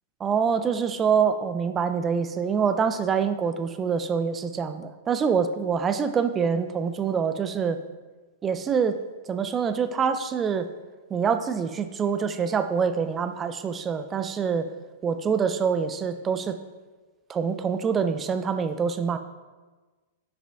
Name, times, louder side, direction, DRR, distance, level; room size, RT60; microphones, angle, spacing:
voice 1, 0.2-7.8 8.4-9.0 9.3-10.7 11.1-14.7 15.0-16.6 17.3-19.2, right 6 dB, 25° right, 9 dB, 0.5 m, -25 dB
6.9 x 5.0 x 3.5 m, 1.3 s
figure-of-eight pair, 105°, 0 cm